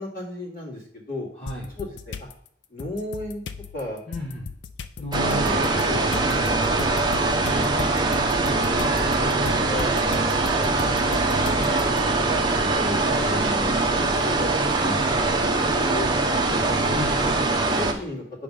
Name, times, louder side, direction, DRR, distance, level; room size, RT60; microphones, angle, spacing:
voice 1, 0.0-1.3 1.8-2.3 2.7-3.4 3.7-4.0 5.3-6.0 6.7-6.9 7.5-9.4 9.7-9.9 10.4-12.1 12.6-16.1 16.5-16.7 17.4-18.2, left 2 dB, 50° left, -3 dB, 2.1 m, -35 dB
voice 2, 1.3-1.7 4.1-4.5 5.0-5.8 6.1-6.6 16.8-17.4, left 1 dB, 30° left, -4 dB, 1.1 m, -34 dB
sound 1, 1.5-2.3 2.8-12.0, left 5 dB, 70° left, 0.5 m, -37 dB
sound 2, 5.1-17.9, right 3 dB, 25° right, 0.7 m, -22 dB
8.9 x 3.3 x 5.3 m, 0.67 s
head